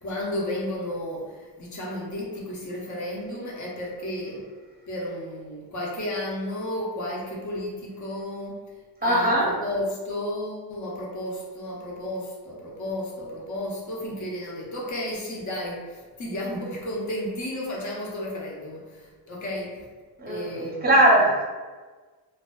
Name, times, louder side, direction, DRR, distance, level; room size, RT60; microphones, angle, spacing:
voice 1, 0.0-4.5 4.9-8.6 9.0-19.9 20.3-21.1, left 1 dB, 45° left, -3 dB, 0.7 m, -33 dB
voice 2, 9.0-9.5 20.2-21.4, right 1 dB, 20° right, -3 dB, 0.6 m, -20 dB
2.4 x 2.4 x 2.2 m, 1.4 s
cardioid pair, 95°, 44 cm